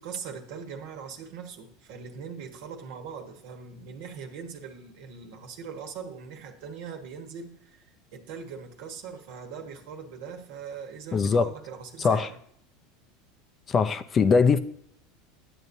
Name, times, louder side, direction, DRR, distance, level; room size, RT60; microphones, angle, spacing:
voice 1, 0.0-12.4, right 6 dB, 65° right, 1.3 m, -41 dB
voice 2, 11.1-11.5 12.0-12.3 13.7-14.6, left 5 dB, 30° left, 0.5 m, -21 dB
11.0 x 8.3 x 2.7 m
hypercardioid pair, 100°, 0 cm